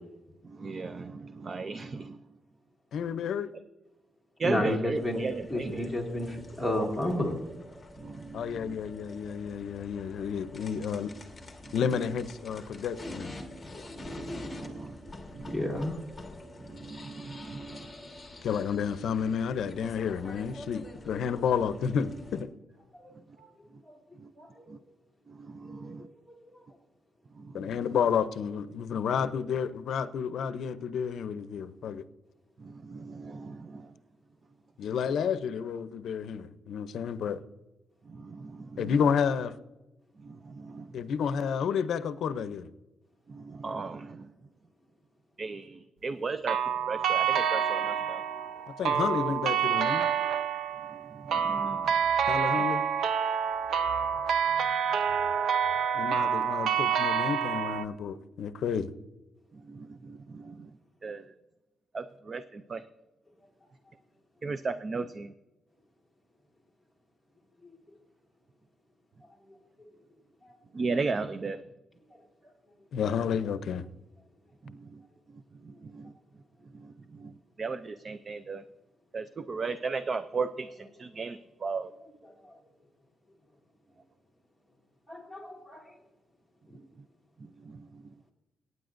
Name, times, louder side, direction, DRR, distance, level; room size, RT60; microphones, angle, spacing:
voice 1, 0.4-2.2 4.4-5.9 8.0-8.8 11.7-11.8 13.9-15.8 16.6-17.9 24.2-24.3 24.7-24.8 25.3-26.1 27.4-27.7 32.6-33.9 38.1-38.9 40.2-40.9 43.3-44.3 45.4-46.6 46.9-48.2 51.1-51.9 52.5-52.6 59.5-60.7 61.0-61.3 61.9-62.8 64.4-65.3 70.7-71.6 74.6-75.0 75.6-76.1 76.7-77.3 77.6-78.6 79.1-81.9 87.6-88.0, right 4 dB, 30° right, 0.4 m, -36 dB
voice 2, 2.9-3.5 8.3-11.1 11.7-13.3 18.4-22.5 27.5-32.0 34.8-37.4 38.8-39.5 40.9-42.7 48.8-50.1 52.3-52.8 55.9-58.9 72.9-73.9, left 7 dB, 70° left, 0.6 m, -30 dB
voice 3, 4.4-5.2 5.5-7.3 15.5-16.0 22.9-23.1 23.4-23.5 23.9-24.0 24.4-24.7 25.8-25.9 26.3-26.4 67.6-67.7 70.4-70.5 82.4-82.5 85.1-85.9, left 1 dB, 5° right, 2.0 m, -31 dB
sound 1, 4.9-22.4, left 2 dB, 10° left, 1.4 m, -46 dB
sound 2, 46.5-57.8, right 7 dB, 80° right, 0.6 m, -28 dB
23.0 x 9.5 x 2.6 m
wide cardioid pair, 180°, 0 cm